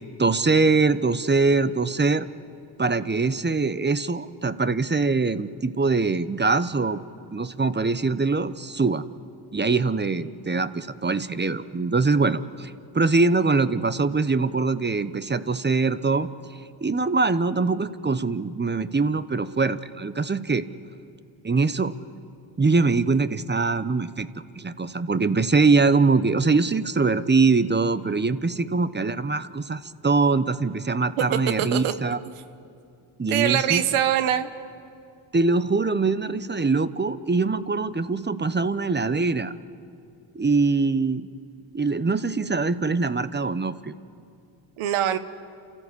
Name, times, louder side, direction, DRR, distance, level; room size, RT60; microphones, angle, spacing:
voice 1, 0.2-2.3 2.8-7.0 7.3-9.0 9.5-16.3 16.8-20.7 21.4-22.0 22.6-24.3 24.5-32.2 33.2-33.8 35.3-39.5 40.3-41.3 41.7-43.9, right 4 dB, 20° right, 14 dB, 0.9 m, -23 dB
voice 2, 31.3-31.9 33.3-34.5 44.8-45.2, right 10 dB, 90° right, 12 dB, 1.1 m, -23 dB
29.5 x 14.0 x 8.4 m, 2.5 s
supercardioid pair, 55°, 49 cm